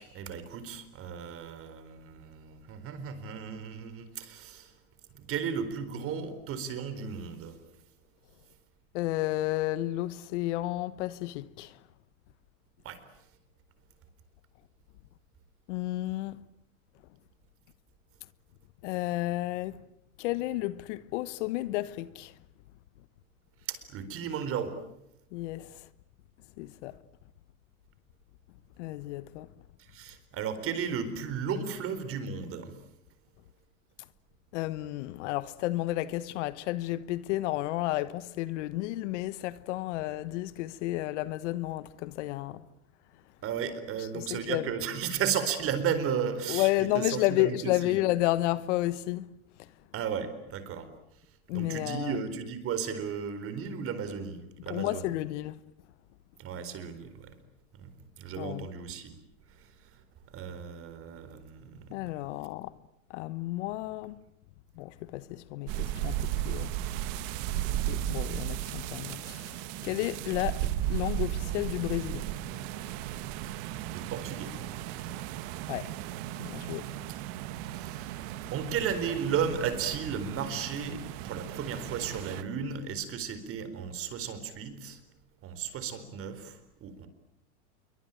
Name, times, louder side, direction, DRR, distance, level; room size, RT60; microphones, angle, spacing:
voice 1, 0.0-4.7 5.1-7.6 12.8-13.0 23.7-24.8 29.8-32.8 43.4-48.0 49.9-50.9 51.5-55.1 56.4-57.4 57.8-59.1 59.5-60.0 60.3-62.0 73.9-74.5 77.7-78.2 78.5-85.0 85.4-87.1, right 7 dB, 30° right, 4.4 m, -34 dB
voice 2, 8.9-11.8 15.7-16.4 18.8-19.8 20.2-22.4 25.3-25.9 26.6-27.0 28.8-29.5 34.5-42.7 44.0-44.7 46.5-49.3 49.6-49.7 51.5-52.2 54.7-55.6 58.4-58.7 61.9-62.7 63.1-64.2 64.8-66.7 67.5-72.3 72.7-72.8 75.7-76.0 76.4-76.9, left 16 dB, 55° left, 1.3 m, -32 dB
sound 1, 65.7-82.4, right 13 dB, 45° right, 1.8 m, -35 dB
28.0 x 23.5 x 9.0 m
supercardioid pair, 140°, 43 cm